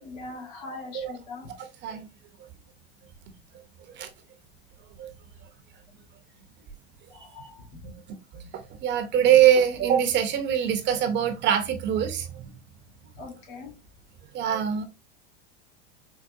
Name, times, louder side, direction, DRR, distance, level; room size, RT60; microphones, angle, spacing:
voice 1, 0.0-1.5 7.1-7.8 13.2-13.7, left 3 dB, 70° left, 2.0 m, -41 dB
voice 2, 8.5-12.4 14.3-14.8, right 9 dB, 35° right, 0.7 m, -23 dB
4.6 x 2.1 x 2.6 m
supercardioid pair, 115°, 30 cm